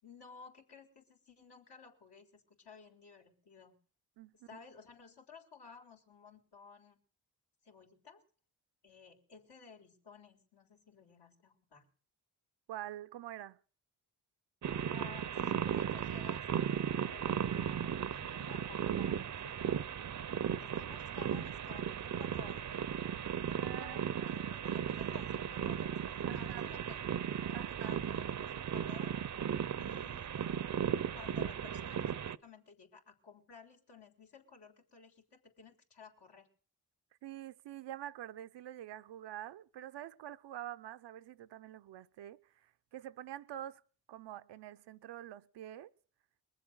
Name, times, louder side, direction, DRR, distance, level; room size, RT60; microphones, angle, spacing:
voice 1, 0.0-3.7 4.3-7.0 7.6-8.2 8.8-11.9 14.9-19.9 20.6-27.0 27.5-29.1 29.8-36.5, left 5 dB, 75° left, 3.5 m, -56 dB
voice 2, 4.2-4.6 12.7-13.6 23.5-24.5 26.3-26.7 27.5-28.0 37.2-43.8 44.1-45.9, right 12 dB, 85° right, 0.7 m, -46 dB
sound 1, 14.6-32.4, right 9 dB, 45° right, 0.7 m, -36 dB
21.5 x 7.5 x 7.9 m
supercardioid pair, 50°, 41 cm